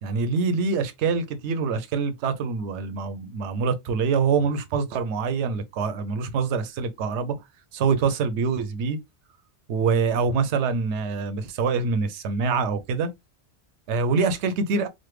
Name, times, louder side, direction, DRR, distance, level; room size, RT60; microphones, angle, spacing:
voice 1, 0.0-7.3 7.7-9.0 9.7-13.1 13.9-14.9, right 5 dB, 80° right, 0.9 m, -25 dB
3.2 x 2.1 x 3.1 m
omnidirectional pair, 1.2 m